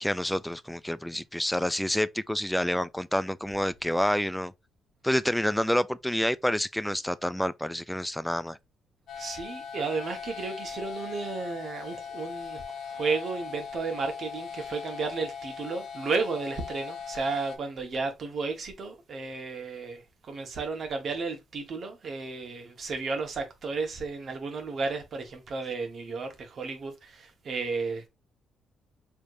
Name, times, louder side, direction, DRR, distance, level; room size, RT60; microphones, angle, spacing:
voice 1, 0.0-4.5 5.0-8.6, equal, 5° left, 0.3 m, -28 dB
sound 1, 9.1-17.6, left 6 dB, 75° left, 1.1 m, -39 dB
voice 2, 9.2-28.1, right 4 dB, 55° right, 1.4 m, -33 dB
4.8 x 3.4 x 2.6 m
cardioid pair, 90°, 0 cm